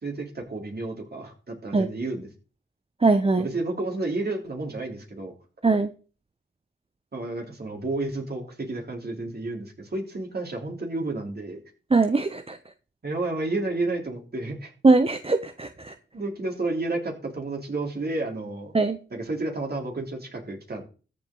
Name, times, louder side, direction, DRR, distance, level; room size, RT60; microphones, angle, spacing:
voice 1, 0.0-2.3 3.4-5.3 7.1-11.6 13.0-14.7 16.1-18.7 19.1-20.8, right 2 dB, 50° right, 2 dB, 3.6 m, -31 dB
voice 2, 3.0-3.5 5.6-5.9 11.9-12.6 14.8-15.9 18.7-19.0, right 3 dB, 25° right, 9 dB, 0.8 m, -21 dB
14.0 x 7.0 x 3.9 m, 0.37 s
cardioid pair, 45°, 21 cm